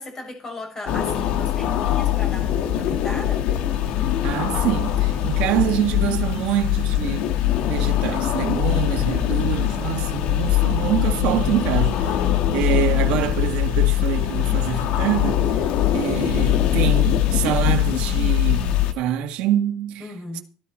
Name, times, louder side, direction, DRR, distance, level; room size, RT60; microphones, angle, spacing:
voice 1, 0.0-3.5 15.8-16.2 20.0-20.4, left 2 dB, 25° left, 6.8 m, -36 dB
sound 1, 0.9-18.9, left 12 dB, 60° left, 1.6 m, -22 dB
voice 2, 4.2-7.3 7.7-12.2 12.5-20.1, right 12 dB, 65° right, 1.9 m, -25 dB
15.0 x 12.5 x 4.4 m
cardioid pair, 155°, 2 cm